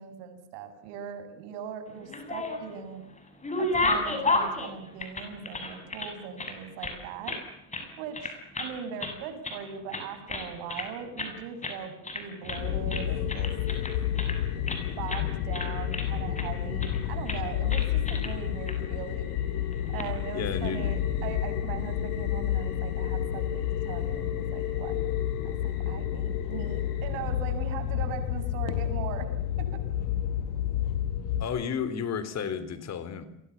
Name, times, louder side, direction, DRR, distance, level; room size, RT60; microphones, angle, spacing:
voice 1, 0.0-3.0 3.6-7.4 8.0-13.5 15.0-19.3 19.9-24.9 25.4-29.3 29.6-29.7, right 7 dB, 75° right, 8 dB, 7.7 m, -39 dB
sound 1, 2.0-2.8 3.2-6.1 6.4-7.4 7.7-7.9 8.1-8.7 9.0-9.6 9.9-10.9 11.2-11.4 11.6-11.8 12.0-12.6 12.9-14.8 15.1-15.3 15.5-16.5 16.8-17.0 17.3-17.4 17.7-18.3 18.7-18.8 19.7-20.1, left 2 dB, 15° left, 6.9 m, -32 dB
sound 2, 12.5-31.4, left 10 dB, 80° left, 5.2 m, -30 dB
voice 2, 20.3-20.9 31.4-33.3, left 7 dB, 35° left, 14 dB, 3.5 m, -32 dB
30.0 x 24.0 x 7.3 m, 0.81 s
cardioid pair, 145°, 45 cm